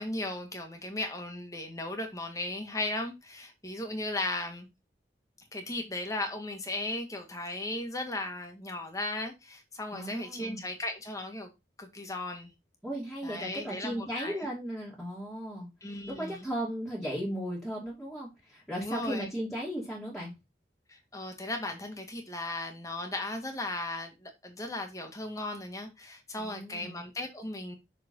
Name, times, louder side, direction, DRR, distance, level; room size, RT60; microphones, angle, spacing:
voice 1, 0.0-4.7 5.5-11.5 11.8-12.5 13.2-14.5 15.8-16.5 18.8-19.3 20.9-27.7, left 2 dB, 20° left, 1.8 m, -36 dB
voice 2, 9.9-10.6 12.8-20.3 26.4-27.0, equal, ahead, 2.5 m, -36 dB
6.3 x 5.0 x 5.3 m
head